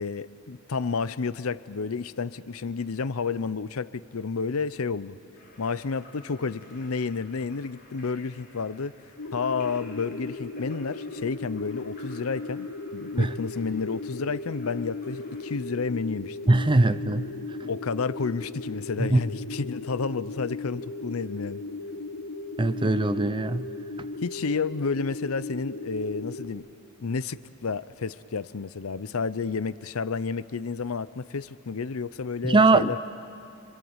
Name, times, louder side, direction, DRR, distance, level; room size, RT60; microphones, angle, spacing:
voice 1, 0.0-5.2 5.6-9.0 9.3-16.4 17.7-21.6 24.2-26.7 27.0-33.0, left 4 dB, 70° left, 16 dB, 0.6 m, -31 dB
Splash splatter / Drip / Trickle dribble, 5.3-15.4, left 1 dB, 45° left, 6.8 m, -53 dB
sound 1, 9.2-26.5, left 2 dB, 90° left, 1.5 m, -37 dB
voice 2, 16.5-17.3 19.0-19.2 22.6-23.7 32.4-32.9, right 2 dB, 20° right, 13 dB, 0.6 m, -21 dB
27.5 x 25.0 x 8.0 m, 2.6 s
head